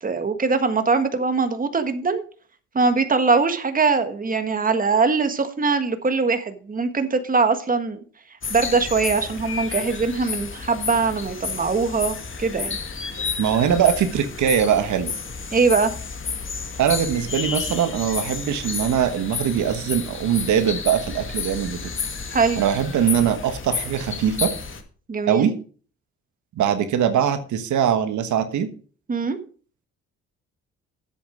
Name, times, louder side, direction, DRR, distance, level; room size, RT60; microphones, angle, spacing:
voice 1, 0.0-2.2 2.7-8.0 8.5-12.7 15.5-15.9 22.3-22.6 25.1-25.5 29.1-29.4, right 4 dB, 30° right, 8 dB, 1.5 m, -22 dB
sound 1, 8.4-24.8, left 5 dB, 40° left, 2.1 m, -31 dB
voice 2, 13.4-15.1 16.8-21.8 22.6-24.5 25.3-25.5 26.6-28.7, right 9 dB, 75° right, 8 dB, 1.4 m, -21 dB
10.0 x 8.1 x 5.0 m, 0.41 s
cardioid pair, 90°, 30 cm